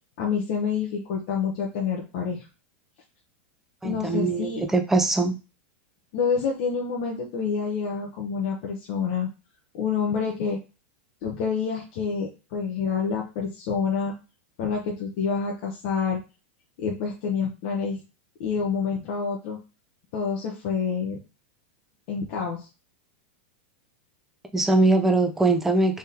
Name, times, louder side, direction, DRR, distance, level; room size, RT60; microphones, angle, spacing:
voice 1, 0.2-2.5 3.8-4.6 6.1-9.3 9.7-10.6 11.2-14.1 14.6-16.2 16.8-18.0 18.4-19.6 20.1-21.2 22.1-22.7, left 6 dB, 45° left, -2 dB, 0.9 m, -27 dB
voice 2, 3.8-5.4 24.5-26.0, right 2 dB, 5° right, 5 dB, 0.4 m, -22 dB
3.6 x 3.5 x 2.8 m, 0.30 s
supercardioid pair, 160°, 7 cm